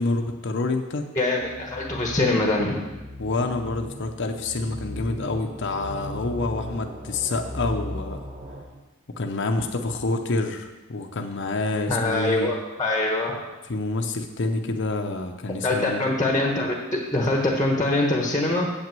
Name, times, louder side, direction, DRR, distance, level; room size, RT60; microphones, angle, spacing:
voice 1, 0.0-1.0 3.2-8.2 9.2-12.5 13.7-16.0, left 3 dB, 55° left, 4 dB, 0.7 m, -27 dB
voice 2, 1.1-2.7 11.9-13.4 15.6-18.7, left 2 dB, 15° left, 0 dB, 1.1 m, -23 dB
sound 1, 1.4-8.6, left 1 dB, 30° right, 1.2 m, -37 dB
8.3 x 6.0 x 7.6 m, 1.1 s
head